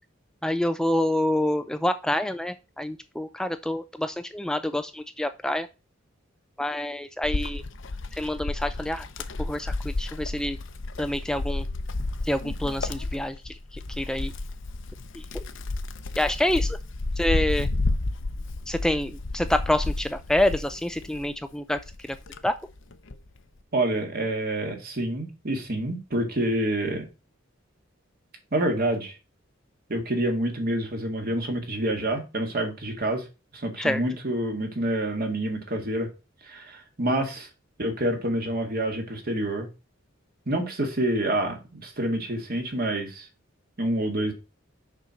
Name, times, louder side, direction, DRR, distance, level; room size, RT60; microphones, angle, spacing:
voice 1, 0.4-5.7 6.6-7.6 8.1-9.1 9.4-10.6 11.0-11.6 12.2-13.4 13.7-14.3 15.1-15.2 16.2-16.8 17.2-17.7 18.7-21.8 22.4-22.5 33.8-34.0, left 1 dB, 5° left, 0.3 m, -27 dB
Wind, 7.2-21.3 21.8-23.3, left 2 dB, 70° left, 0.8 m, -31 dB
voice 2, 23.7-27.1 28.5-29.1 29.9-33.3 33.5-36.1 36.4-37.5 37.8-39.7 40.5-43.3 43.8-44.3, right 1 dB, 50° right, 1.9 m, -27 dB
6.6 x 4.5 x 6.3 m
head